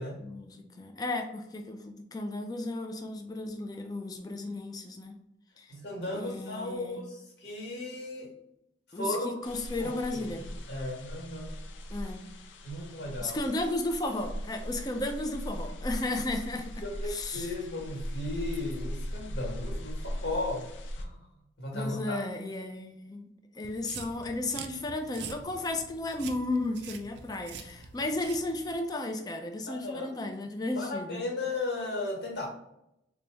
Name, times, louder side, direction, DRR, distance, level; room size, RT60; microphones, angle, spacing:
voice 1, 0.2-5.2 5.6-5.7 6.1-7.0 8.9-10.5 11.9-12.2 13.2-16.7 17.0-17.5 21.7-23.3 23.5-31.2, left 2 dB, 20° left, 5 dB, 0.3 m, -34 dB
voice 2, 5.7-8.3 8.9-9.3 9.8-9.9 10.7-11.6 12.6-13.4 16.6-20.6 21.0-21.3 21.6-22.2 29.7-30.1 30.7-32.5, left 2 dB, 65° left, -2 dB, 1.3 m, -35 dB
sound 1, 9.4-21.1, equal, 90° left, 0.5 m, -39 dB
sound 2, 23.6-28.8, right 6 dB, 65° right, 0.4 m, -45 dB
3.9 x 2.2 x 3.3 m, 0.83 s
head